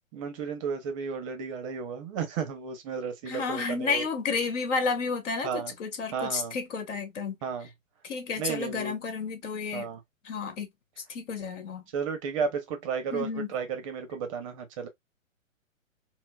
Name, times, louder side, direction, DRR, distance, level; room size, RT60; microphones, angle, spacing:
voice 1, 0.1-4.1 5.4-5.7 6.1-6.6 7.4-7.7 8.4-8.9 9.7-10.0 11.9-14.9, right 6 dB, 25° right, 0.6 m, -33 dB
voice 2, 3.3-7.4 8.0-9.9 10.2-10.7 11.1-11.8 13.1-13.5, left 4 dB, 60° left, 1.3 m, -31 dB
4.2 x 2.0 x 2.2 m
hypercardioid pair, 140°, 41 cm